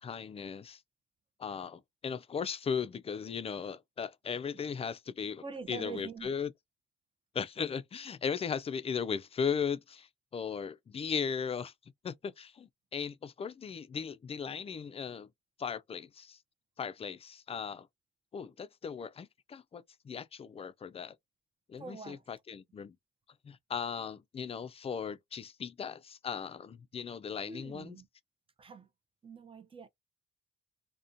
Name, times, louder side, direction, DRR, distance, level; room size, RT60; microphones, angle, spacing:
voice 1, 0.0-0.8 1.4-6.5 7.3-11.7 12.0-15.3 15.6-16.4 16.8-17.9 18.3-21.2 21.7-23.0 23.4-28.0, left 6 dB, 30° left, 0.3 m, -37 dB
voice 2, 5.4-6.3 21.8-22.2 27.4-28.1 28.6-28.9 29.2-29.9, right 5 dB, 25° right, 0.5 m, -44 dB
2.3 x 2.2 x 2.6 m
cardioid pair, 90°, 20 cm